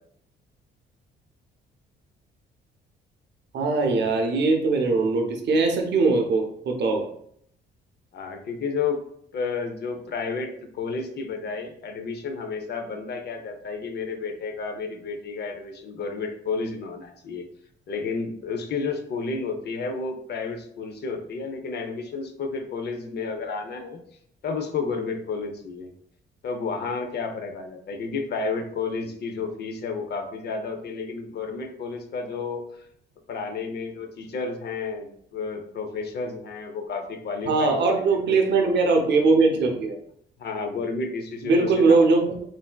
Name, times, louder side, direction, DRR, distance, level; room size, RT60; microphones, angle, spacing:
voice 1, 3.5-7.1 37.5-40.0 41.4-42.4, right 3 dB, 60° right, 3 dB, 0.6 m, -21 dB
voice 2, 8.1-9.0 9.3-17.5 17.9-24.0 24.4-25.9 26.4-32.6 33.3-38.3 40.4-42.0, left 4 dB, 55° left, 5 dB, 0.5 m, -31 dB
3.3 x 2.6 x 2.2 m, 0.67 s
cardioid pair, 90°, 20 cm